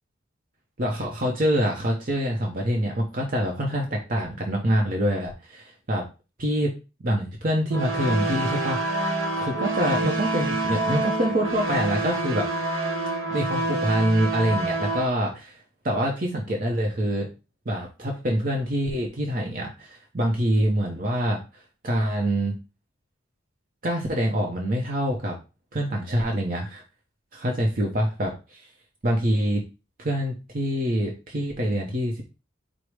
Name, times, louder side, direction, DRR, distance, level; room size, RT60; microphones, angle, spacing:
voice 1, 0.8-6.0 6.4-6.7 7.0-9.1 9.4-12.5 13.3-15.6 15.8-17.3 17.7-21.4 21.8-22.6 23.8-25.4 25.7-26.8 27.3-28.6 29.0-29.6 30.0-32.2, equal, 45° right, 0 dB, 0.7 m, -25 dB
sound 1, 7.7-15.1, right 2 dB, 85° right, 1.0 m, -27 dB
4.7 x 2.1 x 4.7 m, 0.30 s
head